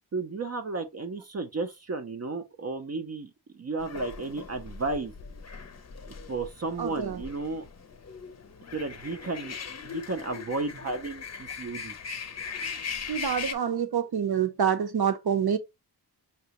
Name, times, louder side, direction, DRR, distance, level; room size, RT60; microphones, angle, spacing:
voice 1, 0.1-5.1 6.1-7.6 8.7-9.6 9.8-11.9, right 3 dB, 40° right, 0.5 m, -33 dB
sound 1, 3.8-13.5, left 6 dB, 40° left, 0.6 m, -40 dB
voice 2, 6.8-7.2 13.1-15.6, right 8 dB, 65° right, 0.8 m, -27 dB
5.7 x 2.9 x 2.9 m
wide cardioid pair, 170°, 41 cm